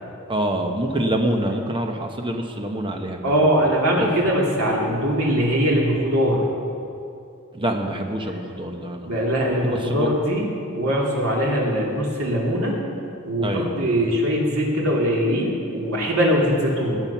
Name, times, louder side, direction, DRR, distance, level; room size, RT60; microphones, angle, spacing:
voice 1, 0.3-3.4 4.0-4.1 7.5-9.1 9.6-10.1 13.4-13.8, right 1 dB, 25° right, 3 dB, 1.0 m, -26 dB
voice 2, 3.2-6.4 9.1-12.8 13.2-17.0, equal, 80° right, -3 dB, 2.8 m, -21 dB
18.0 x 7.8 x 5.9 m, 2.6 s
head